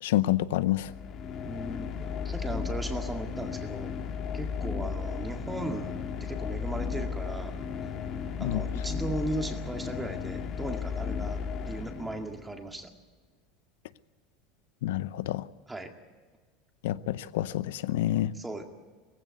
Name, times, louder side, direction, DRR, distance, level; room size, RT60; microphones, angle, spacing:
voice 1, 0.0-0.9 8.4-8.6 14.8-15.4 16.8-18.3, left 14 dB, 85° left, 17 dB, 0.6 m, -28 dB
sound 1, 0.8-12.6, left 6 dB, 45° left, 1.8 m, -35 dB
voice 2, 1.4-3.9 4.3-7.6 7.8-7.9 8.4-12.9 15.7-15.9 18.3-18.6, right 2 dB, 10° right, 5 dB, 2.0 m, -37 dB
17.5 x 15.5 x 9.3 m, 1.4 s
supercardioid pair, 120°, 0 cm